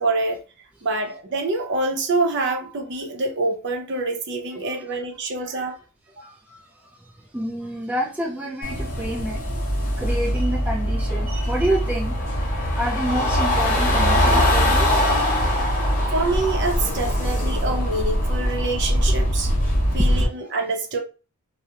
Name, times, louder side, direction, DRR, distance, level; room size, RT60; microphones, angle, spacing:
voice 1, 0.0-5.8 6.2-6.3 16.1-19.5 19.9-21.0, right 2 dB, 55° right, 0.6 m, -26 dB
voice 2, 6.2-9.7 10.0-12.2 12.8-14.9 20.1-20.3, right 1 dB, 5° right, 0.3 m, -28 dB
sound 1, 8.6-20.2, equal, 40° left, 0.7 m, -22 dB
2.3 x 2.0 x 2.8 m
head